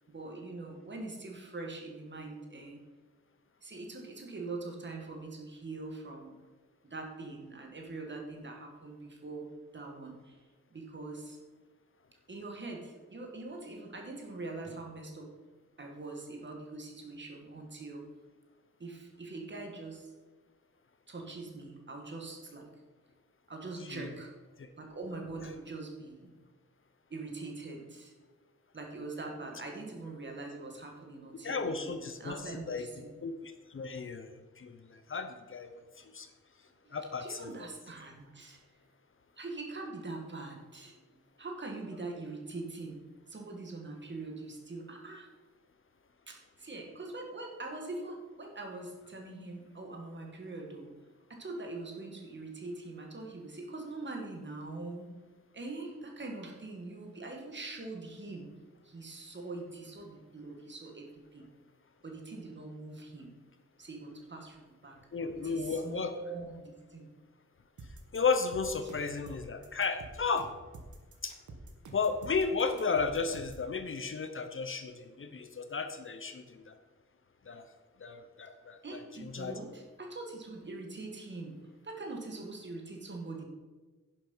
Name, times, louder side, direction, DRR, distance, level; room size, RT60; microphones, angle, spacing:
voice 1, 0.1-2.8 3.6-6.3 6.8-9.5 9.7-10.4 10.7-11.4 12.3-15.3 15.8-18.0 18.8-20.1 21.1-22.7 23.5-24.3 24.8-26.3 27.1-28.1 28.7-33.2 36.8-38.6 39.4-43.0 43.3-45.3 46.3-50.9 51.3-55.1 55.5-58.5 58.8-61.5 62.0-63.3 63.8-64.9 65.4-66.6 66.9-67.1 68.8-68.9 78.8-81.6 81.8-83.5, right 3 dB, 40° right, 1 dB, 2.0 m, -43 dB
voice 2, 31.4-32.4 32.7-32.9 33.2-35.7 36.0-36.3 36.9-37.5 65.1-66.1 68.1-70.5 71.2-71.4 71.9-76.8 77.5-77.6 78.0-78.8 79.2-79.6, left 4 dB, 45° left, 8 dB, 0.8 m, -34 dB
sound 1, 67.8-73.7, right 2 dB, 85° right, 1.4 m, -48 dB
10.5 x 7.5 x 5.6 m, 1.3 s
wide cardioid pair, 175°, 29 cm